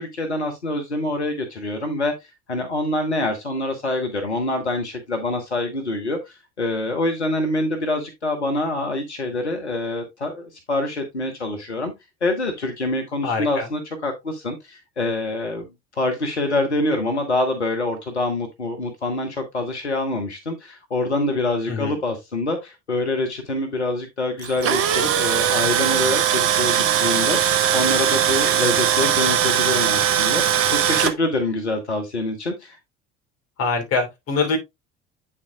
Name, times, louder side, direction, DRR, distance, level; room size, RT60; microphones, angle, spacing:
voice 1, 0.0-11.9 12.2-15.6 15.9-32.8, left 2 dB, 90° left, 1.1 m, -25 dB
voice 2, 13.2-13.7 21.7-22.0 33.6-34.6, left 4 dB, 45° left, 3.3 m, -24 dB
Tools, 24.4-31.1, right 10 dB, 45° right, 1.0 m, -20 dB
8.5 x 7.1 x 2.2 m
figure-of-eight pair, 65°, 33 cm